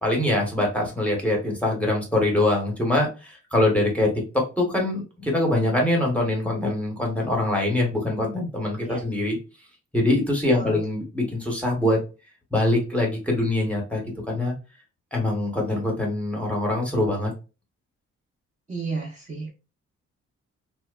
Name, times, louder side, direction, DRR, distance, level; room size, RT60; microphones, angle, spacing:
voice 1, 0.0-9.4 9.9-12.0 12.5-14.5 15.1-17.3, left 1 dB, 5° left, -1 dB, 0.8 m, -24 dB
voice 2, 10.5-10.8 18.7-19.5, right 4 dB, 25° right, -2 dB, 0.7 m, -32 dB
2.8 x 2.1 x 2.2 m, 0.31 s
cardioid pair, 120°, 30 cm